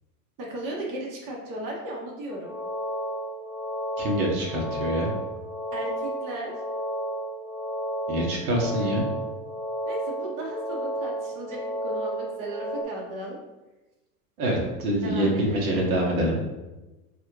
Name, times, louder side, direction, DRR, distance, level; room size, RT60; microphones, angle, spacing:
voice 1, 0.4-2.5 5.7-6.5 9.8-13.4 15.0-15.6, right 1 dB, 45° right, -2 dB, 0.9 m, -35 dB
sound 1, 2.3-12.8, right 1 dB, ahead, 0.6 m, -32 dB
voice 2, 4.0-5.1 8.1-9.0 14.4-16.4, right 1 dB, 70° right, -2 dB, 1.1 m, -25 dB
4.0 x 2.5 x 3.0 m, 1.1 s
hypercardioid pair, 80°, 44 cm